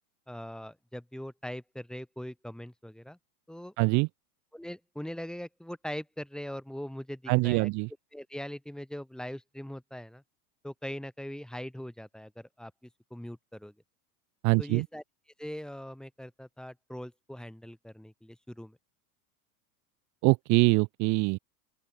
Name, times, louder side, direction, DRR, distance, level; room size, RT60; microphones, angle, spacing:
voice 1, 0.3-3.2 3.5-3.7 4.5-7.7 8.1-10.2 10.6-13.7 14.6-15.0 15.4-18.8, equal, ahead, 2.2 m, -41 dB
voice 2, 3.8-4.1 7.3-7.9 14.4-14.9 20.2-21.4, right 28 dB, 40° right, 0.6 m, -24 dB
open air
supercardioid pair, 120°, 46 cm